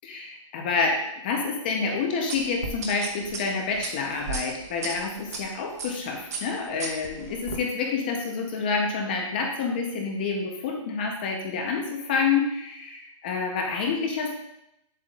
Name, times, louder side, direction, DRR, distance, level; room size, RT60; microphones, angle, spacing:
voice 1, 0.0-14.3, left 5 dB, 15° left, 1 dB, 0.7 m, -28 dB
sound 1, 2.3-5.4 5.8-6.0 6.3-7.6, right 4 dB, 30° right, 0.9 m, -35 dB
9.3 x 7.4 x 2.4 m, 0.80 s
hypercardioid pair, 180°, 17 cm